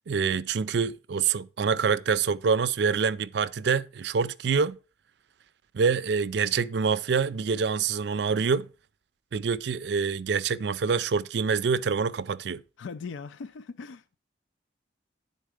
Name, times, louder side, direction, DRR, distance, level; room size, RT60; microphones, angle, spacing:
voice 1, 0.1-4.8 5.7-8.7 9.3-12.6, right 5 dB, 65° right, 0.4 m, -26 dB
voice 2, 12.8-14.1, left 5 dB, 85° left, 0.4 m, -39 dB
10.5 x 4.0 x 4.9 m
head